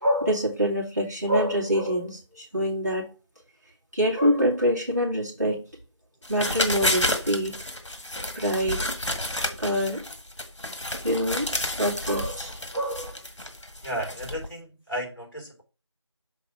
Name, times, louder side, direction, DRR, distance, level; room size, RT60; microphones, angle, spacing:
voice 1, 0.0-3.1 3.9-5.6 6.3-7.6 8.4-8.8 9.6-10.0 11.0-11.5 11.8-13.1, equal, 35° right, -3 dB, 2.1 m, -25 dB
sound 1, 6.2-14.5, left 1 dB, 75° left, 1.7 m, -30 dB
voice 2, 13.8-15.6, equal, 45° left, 1 dB, 3.1 m, -34 dB
6.6 x 3.7 x 4.8 m, 0.32 s
figure-of-eight pair, 180°, 15 cm